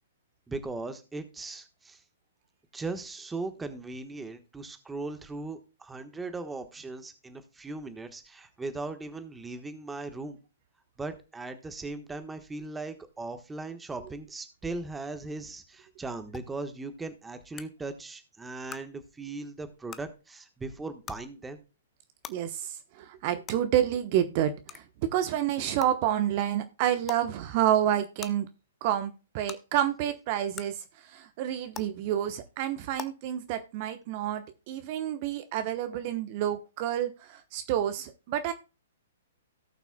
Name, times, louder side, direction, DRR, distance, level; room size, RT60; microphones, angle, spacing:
voice 1, 0.5-2.0 2.7-10.4 11.0-21.6, right 3 dB, 10° right, 8 dB, 1.3 m, -38 dB
sound 1, 16.3-16.4 17.6-17.7 18.7-18.8 19.9-20.0 21.1-21.2 22.2-22.3 23.5-23.6 24.7-24.8 25.8-25.9 27.0-27.2 28.2-28.3 29.5-29.6 30.5-30.6 31.7-31.8 33.0-33.1, left 8 dB, 20° left, 0.8 m, -39 dB
voice 2, 22.3-24.8 25.1-28.5 28.8-38.5, right 11 dB, 45° right, 9 dB, 1.0 m, -29 dB
17.5 x 5.9 x 2.3 m, 0.31 s
hypercardioid pair, 120°, 0 cm